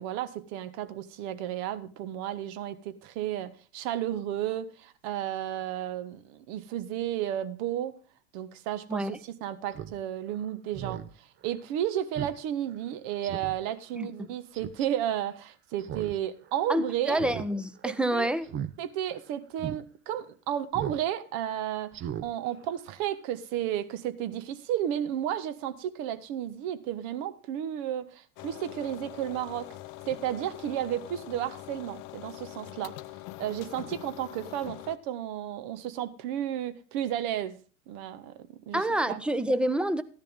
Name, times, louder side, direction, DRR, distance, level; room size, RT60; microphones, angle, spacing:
voice 1, 0.0-8.0 8.3-17.2 17.8-18.3 18.8-29.7 30.1-33.0 33.4-37.6 37.9-39.2, right 11 dB, 50° right, 1.3 m, -33 dB
Speech synthesizer, 9.7-9.9 10.3-10.4 10.7-11.1 11.5-11.6 12.2-12.4 12.7-12.8 13.2-13.6 14.5-14.9 15.8-16.2 16.5-16.6 17.1-17.5 17.8-18.0 18.4-18.7 19.1-19.2 19.6-19.8 20.7-21.0 21.3-21.5 21.9-22.3 22.6-22.7, right 10 dB, 30° right, 0.9 m, -37 dB
voice 2, 14.0-14.3 16.7-18.5 38.7-40.0, right 1 dB, 5° right, 0.8 m, -28 dB
sound 1, 28.4-35.0, left 17 dB, 45° left, 0.8 m, -44 dB
14.5 x 10.5 x 3.7 m
hypercardioid pair, 90°, 37 cm